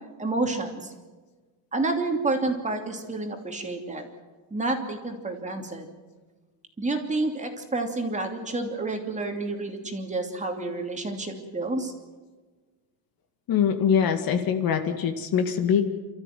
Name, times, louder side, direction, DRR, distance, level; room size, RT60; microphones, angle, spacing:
voice 1, 0.2-0.9 1.7-4.1 4.5-5.9 6.8-11.9, right 2 dB, 15° right, 3 dB, 2.7 m, -29 dB
voice 2, 13.5-15.9, left 7 dB, 45° left, 6 dB, 2.1 m, -23 dB
28.5 x 13.5 x 9.4 m, 1.4 s
cardioid pair, 140°, 47 cm